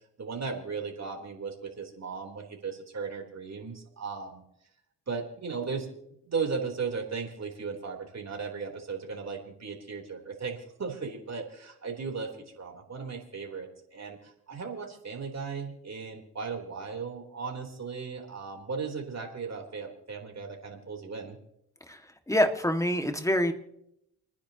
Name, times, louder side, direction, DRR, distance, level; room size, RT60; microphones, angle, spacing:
voice 1, 0.2-4.4 5.1-5.9 6.3-21.4, right 5 dB, 40° right, 1 dB, 3.8 m, -36 dB
voice 2, 22.3-23.5, left 1 dB, 10° left, 6 dB, 2.0 m, -25 dB
29.5 x 10.0 x 3.0 m, 0.78 s
supercardioid pair, 60°, 40 cm